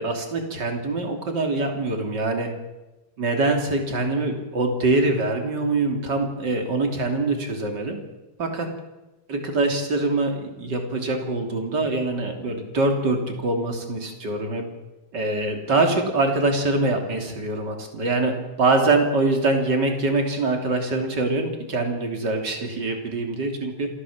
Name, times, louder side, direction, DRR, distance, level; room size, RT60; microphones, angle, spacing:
voice 1, 0.0-2.5 3.2-8.0 8.4-8.7 9.3-14.6 15.1-18.3 18.6-23.9, right 2 dB, 30° right, 3 dB, 3.3 m, -24 dB
27.0 x 15.0 x 7.3 m, 1.1 s
omnidirectional pair, 4.0 m